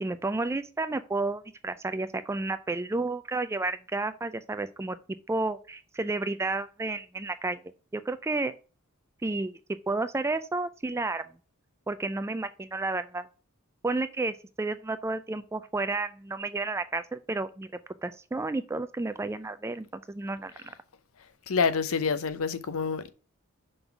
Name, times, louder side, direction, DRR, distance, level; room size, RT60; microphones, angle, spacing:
voice 1, 0.0-5.0 5.3-7.6 7.9-8.6 9.2-9.6 9.9-11.2 11.9-13.3 13.8-17.7 18.0-20.5, right 3 dB, 10° right, 0.3 m, -31 dB
voice 2, 21.5-23.1, left 5 dB, 70° left, 0.6 m, -27 dB
5.4 x 3.8 x 5.7 m
head